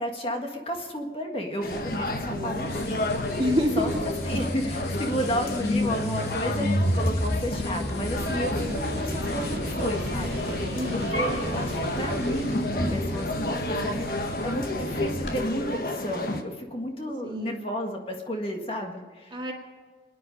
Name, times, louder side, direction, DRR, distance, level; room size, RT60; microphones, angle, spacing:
voice 1, 0.0-3.0 3.3-3.4 3.8-3.9 4.2-19.4, equal, 30° left, 2 dB, 1.7 m, -32 dB
sound 1, 1.6-16.4, left 1 dB, 55° left, 1.3 m, -32 dB
sound 2, 1.7-15.4, left 1 dB, 75° left, 2.2 m, -31 dB
voice 2, 2.2-2.9 3.4-3.9 10.7-11.2 17.2-17.6 19.3-19.5, equal, 30° right, 1 dB, 2.1 m, -28 dB
sound 3, 8.2-12.6, right 3 dB, 60° right, 0.5 m, -36 dB
27.0 x 10.0 x 5.3 m, 1.5 s
head